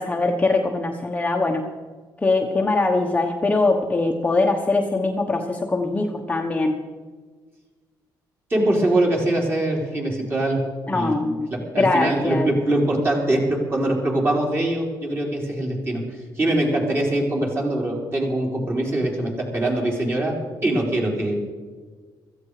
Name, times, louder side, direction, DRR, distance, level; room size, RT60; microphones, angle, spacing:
voice 1, 0.0-1.7 2.2-6.8 10.9-11.5 11.8-12.5, left 3 dB, 15° left, 2 dB, 1.1 m, -22 dB
voice 2, 8.5-11.1 11.7-16.0 16.4-20.4 20.6-21.3, right 1 dB, 30° right, 0 dB, 4.1 m, -23 dB
16.5 x 14.5 x 4.9 m, 1.4 s
cardioid pair, 130°, 8 cm